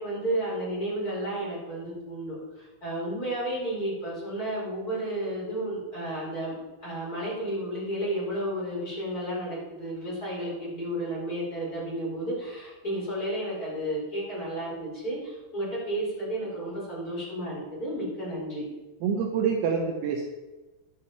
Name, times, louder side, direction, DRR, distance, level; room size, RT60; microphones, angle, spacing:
voice 1, 0.0-18.7, right 1 dB, 20° left, -7 dB, 4.6 m, -32 dB
voice 2, 19.0-20.2, right 6 dB, 90° right, 0 dB, 3.7 m, -26 dB
11.5 x 9.6 x 4.3 m, 1.1 s
omnidirectional pair, 5.9 m